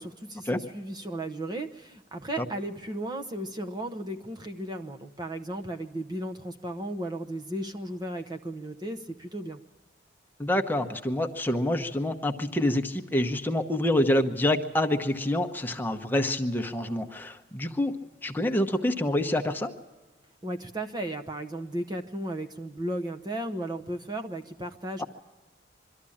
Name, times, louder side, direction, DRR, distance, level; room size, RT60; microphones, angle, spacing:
voice 1, 0.0-9.6 20.4-25.0, right 1 dB, 20° right, 5 dB, 0.8 m, -35 dB
voice 2, 10.4-17.9 18.2-19.7 25.0-25.1, left 1 dB, 10° left, 4 dB, 0.9 m, -27 dB
23.5 x 13.0 x 8.6 m, 1.3 s
head